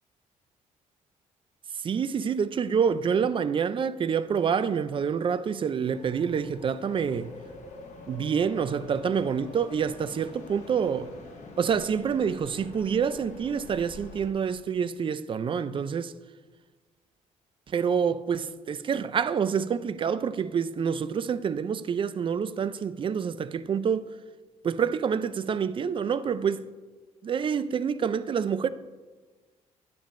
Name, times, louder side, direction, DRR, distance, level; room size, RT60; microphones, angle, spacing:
voice 1, 1.8-7.3 8.1-11.1 11.6-16.1 17.7-24.1 24.6-26.7 27.2-28.7, right 7 dB, 40° right, 0.4 m, -27 dB
sound 1, 5.9-14.3, left 3 dB, 60° left, 1.3 m, -45 dB
10.0 x 9.1 x 2.5 m
cardioid pair, 100°, 14 cm